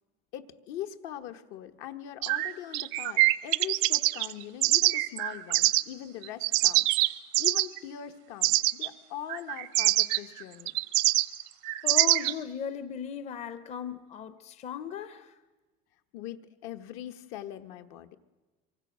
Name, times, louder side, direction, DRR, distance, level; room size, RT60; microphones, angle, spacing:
voice 1, 0.3-10.7 16.1-18.2, left 11 dB, 70° left, 1.3 m, -42 dB
sound 1, 2.2-5.8 6.2-7.8 8.4-8.9 9.3-12.3, right 20 dB, 80° right, 0.8 m, -24 dB
voice 2, 11.8-15.4, left 7 dB, 35° left, 0.7 m, -37 dB
26.0 x 23.5 x 6.3 m
cardioid pair, 170°, 21 cm